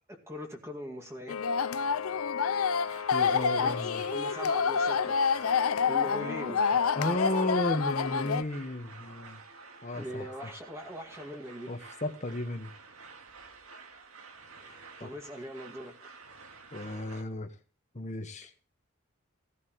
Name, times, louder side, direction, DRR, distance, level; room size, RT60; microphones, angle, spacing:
voice 1, 0.1-1.4 3.6-3.7 4.1-5.2 5.5-6.6 9.9-11.7 14.6-16.0, equal, 15° right, 2.2 m, -41 dB
sound 1, 1.3-8.4, left 6 dB, 85° left, 0.6 m, -28 dB
sound 2, 2.8-17.2, right 4 dB, 90° right, 2.1 m, -51 dB
voice 2, 3.1-4.0 6.6-9.4 9.8-10.3 11.7-12.7 15.0-15.1 16.7-17.5 17.9-18.5, left 1 dB, 35° left, 1.4 m, -33 dB
16.0 x 15.5 x 3.1 m
head